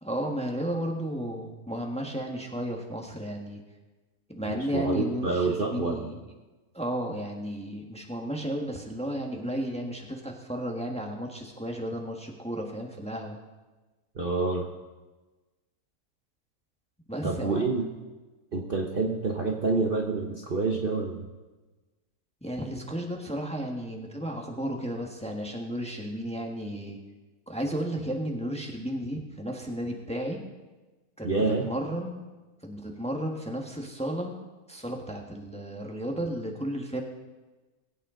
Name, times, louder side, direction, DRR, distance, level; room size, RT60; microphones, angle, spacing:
voice 1, 0.0-3.6 4.3-6.1 6.7-13.4 17.1-17.7 22.4-27.0 27.5-30.4 31.2-32.2 32.6-34.4 34.7-37.0, equal, 5° left, 1 dB, 1.4 m, -33 dB
voice 2, 4.4-6.1 14.1-14.7 17.2-17.9 18.5-21.2 31.2-31.7, right 3 dB, 40° right, 1 dB, 1.1 m, -27 dB
21.0 x 8.9 x 3.8 m, 1.2 s
omnidirectional pair, 1.6 m